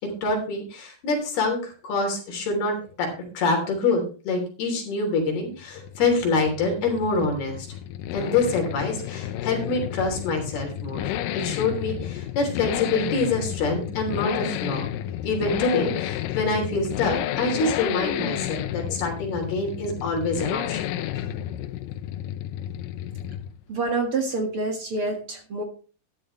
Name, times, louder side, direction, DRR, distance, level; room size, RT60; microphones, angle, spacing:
voice 1, 0.0-7.7 8.1-11.0 11.3-14.9 15.2-21.3, left 3 dB, 70° left, 2 dB, 5.2 m, -26 dB
Accelerating revving vroom, 5.5-23.6 23.9-24.0, left 12 dB, 85° left, 2.0 m, -31 dB
voice 2, 23.7-25.6, right 3 dB, 50° right, 3 dB, 1.8 m, -27 dB
12.5 x 12.0 x 3.2 m, 0.36 s
omnidirectional pair, 4.8 m